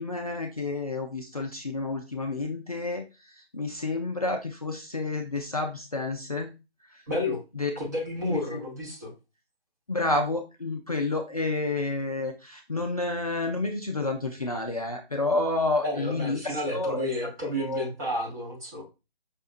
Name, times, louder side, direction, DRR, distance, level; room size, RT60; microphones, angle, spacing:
voice 1, 0.0-6.5 6.9-7.0 7.6-7.7 8.3-8.6 9.9-17.3 17.6-17.9, left 2 dB, 40° left, 3 dB, 0.4 m, -30 dB
voice 2, 7.1-7.4 7.8-9.1 15.8-18.8, left 1 dB, 15° right, -3 dB, 0.8 m, -31 dB
5.6 x 2.6 x 2.4 m, 0.28 s
figure-of-eight pair, 150°, 32 cm